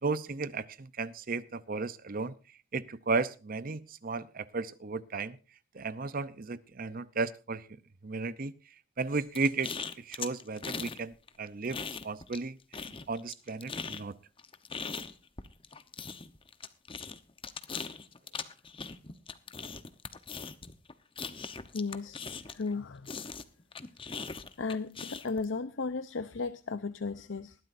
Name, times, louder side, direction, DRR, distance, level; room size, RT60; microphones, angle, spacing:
voice 1, 0.0-2.3 2.7-5.4 5.7-7.7 8.0-8.5 9.0-14.2, right 4 dB, 45° right, 15 dB, 0.7 m, -34 dB
sound 1, 9.3-11.0 11.3-12.5 12.7-22.7 23.1-25.4, left 5 dB, 30° left, 1.0 m, -40 dB
voice 2, 21.7-22.2 22.5-23.1 24.6-27.6, left 4 dB, 80° left, 12 dB, 0.7 m, -35 dB
20.0 x 13.5 x 2.6 m, 0.32 s
head